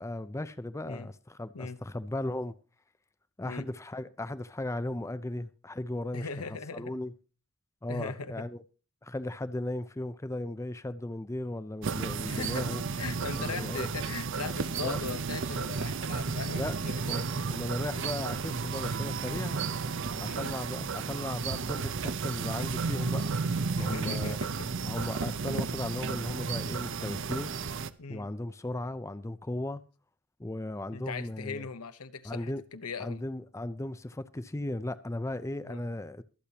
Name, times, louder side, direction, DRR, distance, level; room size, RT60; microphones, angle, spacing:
voice 1, 0.0-2.6 3.4-6.3 6.7-7.1 7.8-8.6 9.0-12.8 13.4-13.9 14.8-15.0 16.5-16.7 17.1-19.7 20.2-23.2 23.8-24.4 24.8-27.5 28.1-29.8 30.4-31.7 32.2-32.6 33.0-36.2, left 1 dB, 15° left, 0.5 m, -36 dB
voice 2, 6.1-6.9 7.9-8.5 12.2-12.7 13.0-17.5 20.2-20.5 20.8-20.9 23.8-24.9 28.0-28.3 30.9-33.2 35.6-35.9, left 4 dB, 90° left, 1.0 m, -39 dB
sound 1, 11.8-27.9, right 5 dB, 60° right, 0.6 m, -33 dB
23.5 x 8.4 x 2.9 m
head